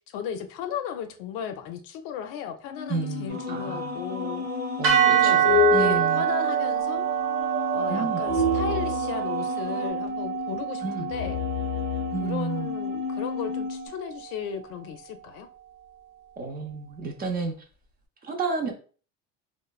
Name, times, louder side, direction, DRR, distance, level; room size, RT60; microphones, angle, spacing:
voice 1, 0.0-4.5 5.1-7.1 7.7-11.4 12.2-15.5, left 8 dB, 70° left, 0.5 m, -35 dB
sound 1, 2.7-13.9, left 5 dB, 20° left, 0.6 m, -30 dB
voice 2, 2.9-4.0 4.8-5.5 5.7-6.2 7.9-8.2 10.8-11.1 12.1-12.7 16.4-17.5 18.2-18.7, right 4 dB, 25° right, 0.5 m, -31 dB
sound 2, 3.3-9.9, right 3 dB, 45° right, 0.9 m, -35 dB
sound 3, 4.8-13.1, right 10 dB, 75° right, 0.9 m, -26 dB
3.0 x 2.1 x 2.3 m
cardioid pair, 130°, 35 cm